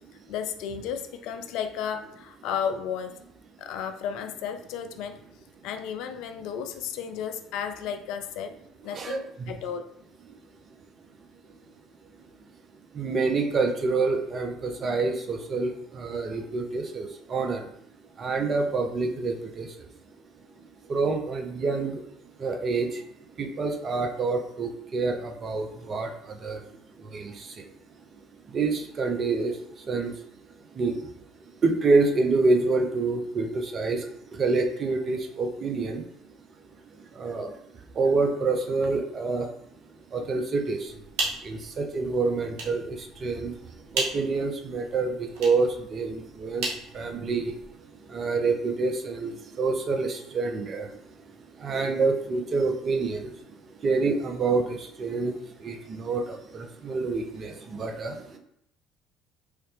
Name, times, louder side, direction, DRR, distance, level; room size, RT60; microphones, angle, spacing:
voice 1, 0.3-3.1 3.6-5.2 5.6-8.5 8.8-9.9, left 8 dB, 65° left, 8 dB, 0.3 m, -33 dB
voice 2, 8.9-9.5 12.9-17.7 18.2-19.9 20.6-22.1 22.4-23.0 23.4-26.7 26.9-27.7 28.4-30.2 30.7-31.1 31.6-36.1 37.0-37.6 37.9-39.5 40.1-41.0 41.4-47.8 48.1-51.1 51.4-53.4 53.8-58.4, right 3 dB, 45° right, 4 dB, 0.6 m, -27 dB
sound 1, 40.9-47.7, right 2 dB, 65° right, 0.9 m, -36 dB
3.2 x 2.8 x 3.2 m, 0.74 s
hypercardioid pair, 60°, 0 cm